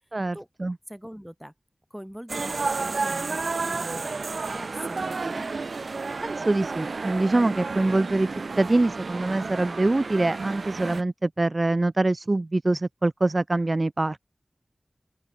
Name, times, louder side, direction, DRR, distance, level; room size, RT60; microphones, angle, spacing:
voice 1, 0.1-0.8 6.2-8.3 8.6-14.2, right 2 dB, 45° right, 0.5 m, -24 dB
voice 2, 0.9-1.5 1.9-5.5, equal, 5° right, 2.5 m, -42 dB
sound 1, 2.3-11.0, right 4 dB, 85° right, 0.8 m, -31 dB
open air
wide cardioid pair, 70°, 0 cm